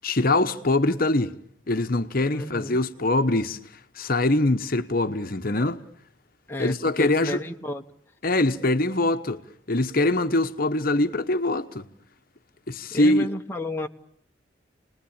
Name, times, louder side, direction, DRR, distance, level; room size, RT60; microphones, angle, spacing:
voice 1, 0.0-1.3 1.7-3.6 3.9-5.8 6.6-7.4 8.2-9.4 9.7-11.9 12.7-13.3, left 2 dB, 45° left, 1.0 m, -23 dB
voice 2, 2.3-2.8 6.5-7.8 12.9-13.9, left 1 dB, 10° left, 1.1 m, -32 dB
30.0 x 20.5 x 8.8 m
head